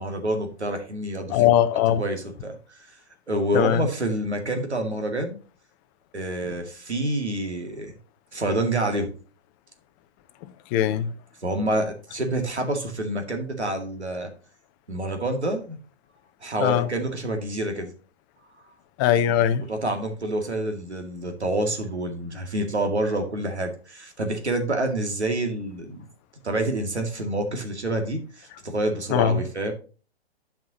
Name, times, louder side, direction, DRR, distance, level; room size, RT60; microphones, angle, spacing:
voice 1, 0.0-1.5 2.0-2.8 3.3-5.4 6.1-8.0 8.3-9.1 11.4-14.3 14.9-15.8 16.4-17.9 19.7-26.1 26.4-29.7, right 1 dB, 85° right, 2.2 m, -27 dB
voice 2, 1.3-2.0 3.5-3.8 10.7-11.1 16.6-16.9 19.0-19.6 29.1-29.4, left 10 dB, 20° left, 0.5 m, -20 dB
11.0 x 5.9 x 2.8 m
figure-of-eight pair, 120°, 33 cm